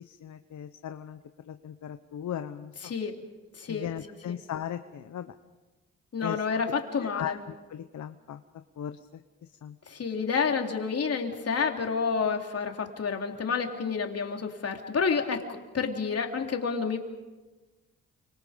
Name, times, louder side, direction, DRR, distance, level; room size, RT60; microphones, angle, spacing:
voice 1, 0.1-1.2 1.5-2.9 3.7-5.3 6.2-6.4 7.0-8.4 8.8-9.0 9.6-9.7, left 10 dB, 70° left, 9 dB, 1.0 m, -37 dB
voice 2, 2.8-3.1 3.6-3.9 4.3-4.4 6.1-7.4 9.9-15.4 15.7-17.0, left 5 dB, 55° left, 3 dB, 3.5 m, -29 dB
29.5 x 26.0 x 5.3 m, 1.2 s
cardioid pair, 75°, 30 cm